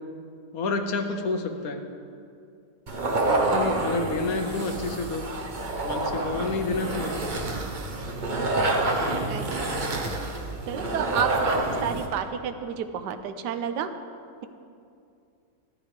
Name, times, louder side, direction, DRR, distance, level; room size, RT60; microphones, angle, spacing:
voice 1, 0.5-1.8 3.3-5.2 5.8-7.3, left 3 dB, 60° left, 5 dB, 1.1 m, -29 dB
sound 1, 2.9-12.2, right 2 dB, 40° right, 0.7 m, -28 dB
voice 2, 10.7-11.5 11.8-13.9, right 8 dB, 70° right, 9 dB, 1.2 m, -30 dB
17.5 x 10.0 x 3.3 m, 2.5 s
omnidirectional pair, 2.0 m